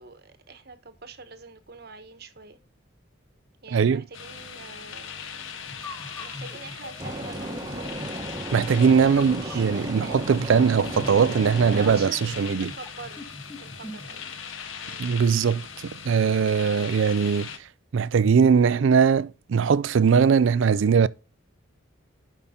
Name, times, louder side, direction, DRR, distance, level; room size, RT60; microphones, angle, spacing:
voice 1, 0.0-2.6 3.6-5.3 6.1-8.3 8.8-10.0 11.7-14.3 14.8-15.2, right 4 dB, 50° right, 1.1 m, -45 dB
voice 2, 3.7-4.0 8.5-12.7 15.0-15.6 16.1-17.5 17.9-21.1, right 6 dB, 70° right, 0.4 m, -20 dB
sound 1, 4.1-17.6, left 6 dB, 75° left, 0.9 m, -40 dB
sound 2, 5.7-14.2, left 2 dB, 10° left, 0.8 m, -43 dB
sound 3, 7.0-12.0, right 1 dB, 20° right, 1.0 m, -35 dB
11.0 x 5.6 x 3.7 m
head